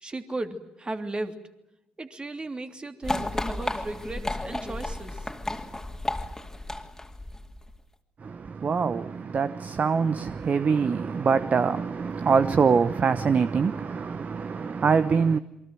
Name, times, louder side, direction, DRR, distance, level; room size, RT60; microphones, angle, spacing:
voice 1, 0.0-1.4 2.0-5.2, right 2 dB, 25° right, 3.0 m, -35 dB
sound 1, 3.0-7.8, left 2 dB, 10° left, 2.9 m, -33 dB
voice 2, 8.2-15.4, right 5 dB, 40° right, 1.0 m, -24 dB
28.0 x 23.5 x 7.7 m
hypercardioid pair, 45°, 4 cm